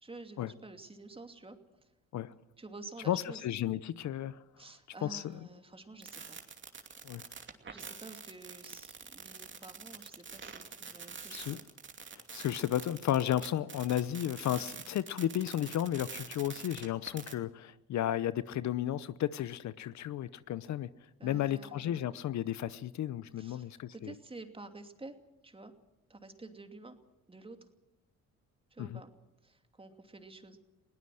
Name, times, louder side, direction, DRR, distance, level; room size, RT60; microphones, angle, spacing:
voice 1, 0.0-1.6 2.6-3.4 4.6-6.4 7.7-11.6 14.4-14.6 21.2-22.2 23.4-25.2 25.4-25.7 26.1-27.0 27.3-27.6 28.7-29.1 29.4-30.6, right 3 dB, 20° right, 2.7 m, -50 dB
voice 2, 3.1-4.4 5.0-5.2 7.0-7.2 11.3-11.6 12.3-20.9 21.2-24.1 28.8-29.0, left 11 dB, 65° left, 0.8 m, -33 dB
sound 1, 6.0-17.3, right 5 dB, 40° right, 2.7 m, -46 dB
21.5 x 18.0 x 7.8 m
cardioid pair, 90°, 30 cm